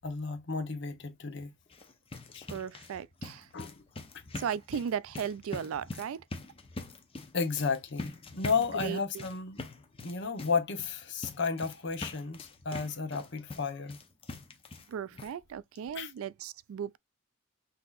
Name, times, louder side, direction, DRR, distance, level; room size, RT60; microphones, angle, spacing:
voice 1, 0.0-1.5 2.3-2.5 3.5-3.8 7.3-9.6 10.0-14.0 15.1-15.2 15.9-16.1, left 5 dB, 60° left, 0.9 m, -33 dB
sound 1, 1.6-14.9 15.2-15.3 15.8-15.9 16.2-16.3, left 2 dB, 25° left, 0.7 m, -44 dB
voice 2, 2.5-3.5 4.4-6.2 8.8-9.2 14.9-17.0, right 8 dB, 75° right, 0.3 m, -36 dB
5.9 x 2.8 x 2.4 m
head